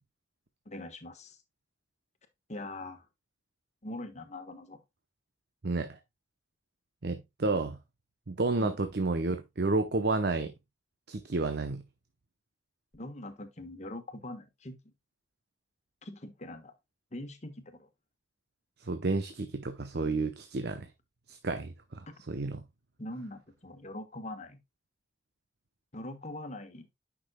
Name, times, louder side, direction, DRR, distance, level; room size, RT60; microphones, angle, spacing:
voice 1, 0.6-1.4 2.5-3.1 3.8-4.8 8.6-8.7 12.9-14.8 16.0-16.7 17.1-17.9 22.1-22.4 23.0-24.6 25.9-26.9, left 1 dB, 40° left, 1.3 m, -42 dB
voice 2, 5.6-6.0 7.0-7.8 8.3-10.5 11.1-11.8 18.8-20.9 21.3-22.6, right 3 dB, 60° right, 0.8 m, -31 dB
9.5 x 6.1 x 2.2 m
head